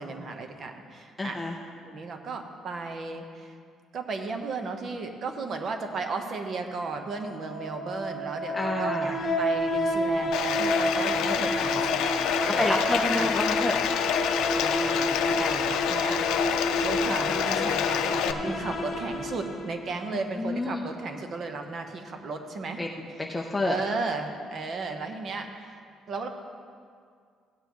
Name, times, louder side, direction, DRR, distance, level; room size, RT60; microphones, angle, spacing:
voice 1, 0.0-1.4 1.8-3.5 3.9-12.8 13.1-13.3 14.4-16.2 16.8-22.8 23.6-25.8 26.1-26.3, right 3 dB, 35° right, 5 dB, 0.9 m, -35 dB
voice 2, 1.2-1.6 8.5-9.1 12.6-13.7 15.4-15.7 18.6-18.7 20.4-20.8 22.8-23.8, left 2 dB, 10° left, 0 dB, 0.6 m, -29 dB
sound 1, 7.3-20.1, left 1 dB, 40° left, 1.4 m, -30 dB
Bathtub (filling or washing), 10.3-18.3, left 9 dB, 90° left, 0.5 m, -28 dB
16.5 x 9.3 x 3.0 m, 2.2 s
cardioid pair, 170°, 0 cm